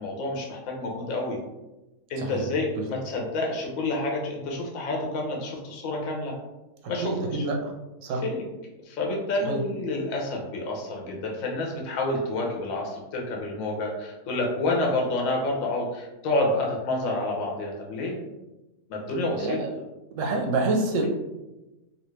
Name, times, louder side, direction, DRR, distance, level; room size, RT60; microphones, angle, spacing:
voice 1, 0.0-1.4 2.1-6.3 6.9-7.4 8.2-8.4 8.8-18.2 18.9-19.6, left 2 dB, 65° left, -1 dB, 1.1 m, -29 dB
voice 2, 7.0-7.7 8.0-8.2 9.4-9.6 19.4-19.8 20.1-21.1, right 2 dB, 65° right, 2 dB, 0.9 m, -27 dB
3.2 x 2.5 x 3.1 m, 1.0 s
omnidirectional pair, 1.6 m